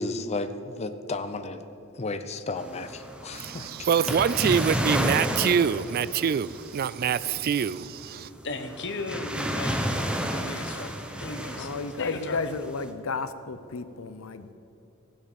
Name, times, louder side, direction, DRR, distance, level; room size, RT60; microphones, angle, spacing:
voice 1, 0.0-1.6 1.9-3.9, left 2 dB, 30° left, 0.6 m, -33 dB
sound 1, 2.6-12.9, equal, 5° right, 0.9 m, -32 dB
voice 2, 3.3-8.3, right 7 dB, 45° right, 0.3 m, -25 dB
voice 3, 8.4-11.7 12.0-12.4, left 3 dB, 60° left, 1.3 m, -36 dB
voice 4, 11.5-14.5, left 4 dB, 80° left, 0.7 m, -33 dB
16.5 x 7.8 x 7.0 m
head